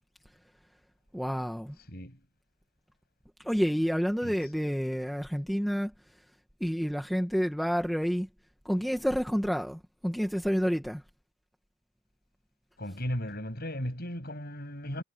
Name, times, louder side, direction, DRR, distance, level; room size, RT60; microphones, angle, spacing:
voice 1, 1.1-1.8 3.4-5.9 6.6-8.3 8.6-11.0, equal, ahead, 1.3 m, -29 dB
voice 2, 1.9-2.2 4.2-4.4 12.8-15.0, equal, 45° left, 7.3 m, -36 dB
head